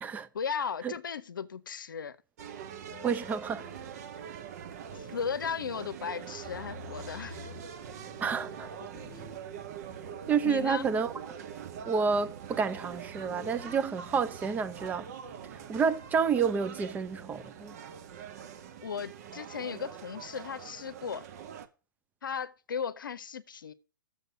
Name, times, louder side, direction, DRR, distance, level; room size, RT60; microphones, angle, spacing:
voice 1, 0.3-2.2 4.9-7.5 8.8-8.9 10.4-10.9 18.8-21.3 22.2-23.7, left 6 dB, 70° left, 0.7 m, -36 dB
sound 1, 2.4-21.7, right 8 dB, 50° right, 0.9 m, -44 dB
sound 2, 2.9-4.4 4.9-17.1, left 8 dB, 35° left, 1.4 m, -53 dB
voice 2, 3.0-3.7 8.2-8.7 10.3-11.1 11.9-15.1 15.5-17.8, right 6 dB, 15° right, 0.6 m, -29 dB
6.9 x 6.7 x 6.7 m
figure-of-eight pair, 120°, 11 cm